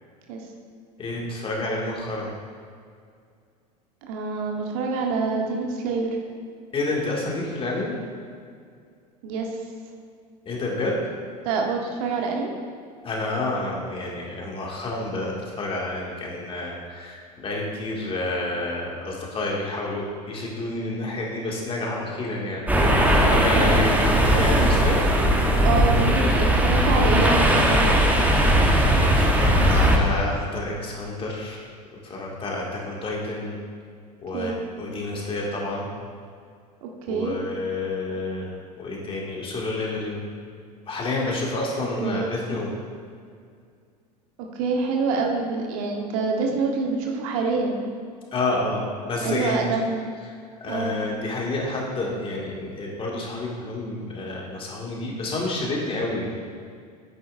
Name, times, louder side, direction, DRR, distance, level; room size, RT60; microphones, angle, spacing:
voice 1, 1.0-2.3 6.7-7.9 10.5-11.0 13.0-22.6 22.9-23.9 24.2-25.0 29.0-31.6 31.9-33.6 34.2-35.9 37.1-38.5 38.8-40.2 40.9-42.7 48.3-49.6 50.6-56.4, left 2 dB, 25° left, -2 dB, 2.0 m, -29 dB
voice 2, 4.0-6.2 9.2-9.5 11.4-12.5 23.6-23.7 25.6-27.9 34.3-34.6 36.8-37.4 41.8-42.3 44.5-47.8 49.2-50.1 50.7-51.0, right 4 dB, 55° right, 1 dB, 1.2 m, -26 dB
sound 1, 22.7-30.0, equal, 10° right, 1.0 m, -19 dB
10.0 x 8.9 x 2.6 m, 2.2 s
figure-of-eight pair, 80°, 21 cm